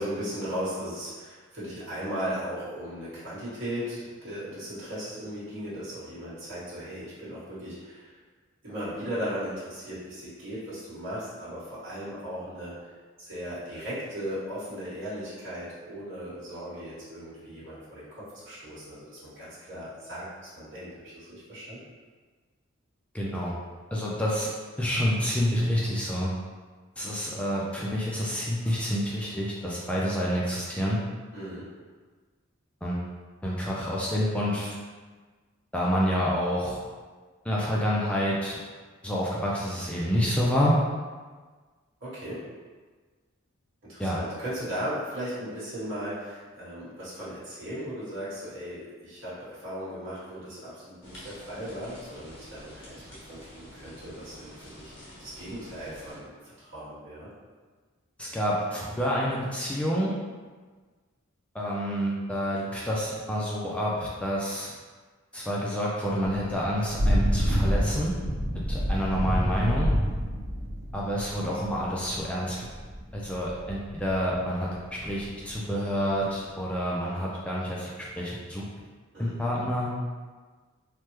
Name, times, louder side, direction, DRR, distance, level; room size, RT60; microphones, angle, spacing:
voice 1, 0.0-8.1 8.6-12.8 13.2-21.8 31.3-31.7 42.0-42.5 43.9-57.3 79.1-79.4, equal, 60° right, -10 dB, 1.2 m, -37 dB
voice 2, 23.1-23.5 23.9-26.3 27.0-31.0 32.8-33.0 33.4-34.8 35.7-36.8 37.4-38.6 39.0-40.8 44.0-44.2 58.2-60.1 61.5-64.7 65.3-68.1 68.7-69.9 70.9-72.7 73.1-78.7 79.2-79.9, equal, 5° left, -5 dB, 0.3 m, -28 dB
sound 1, 51.0-56.2, equal, 60° left, 0.9 m, -48 dB
Thunder / Rain, 66.2-75.5, equal, 85° right, 0.8 m, -29 dB
3.3 x 2.1 x 3.0 m, 1.4 s
head